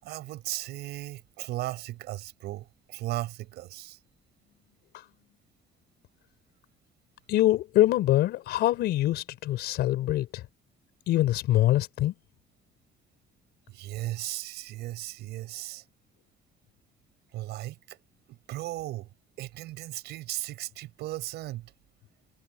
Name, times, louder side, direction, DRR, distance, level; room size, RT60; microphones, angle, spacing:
voice 1, 0.0-4.0 13.7-15.8 17.3-18.0 18.3-19.1 19.4-21.7, right 16 dB, 80° right, 6.4 m, -36 dB
voice 2, 7.3-10.4 11.1-12.1, left 14 dB, 75° left, 4.9 m, -24 dB
cardioid pair, 110°, 17 cm